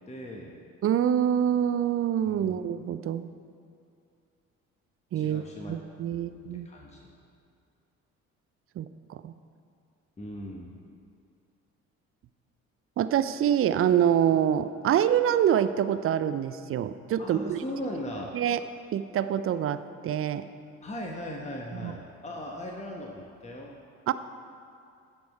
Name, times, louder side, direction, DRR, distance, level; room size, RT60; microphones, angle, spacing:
voice 1, 0.1-0.6 2.2-2.6 5.1-5.8 6.1-6.4 6.6-7.1 10.2-10.7 17.2-18.3 20.8-23.7, equal, 15° left, 0 dB, 1.2 m, -38 dB
voice 2, 0.8-3.3 5.1-5.4 5.7-6.7 8.8-9.3 13.0-17.6 18.3-18.6 18.9-20.4 21.7-21.9 24.1-24.2, right 9 dB, 35° right, 12 dB, 0.5 m, -26 dB
15.0 x 5.3 x 4.6 m, 2.4 s
figure-of-eight pair, 50°, 40 cm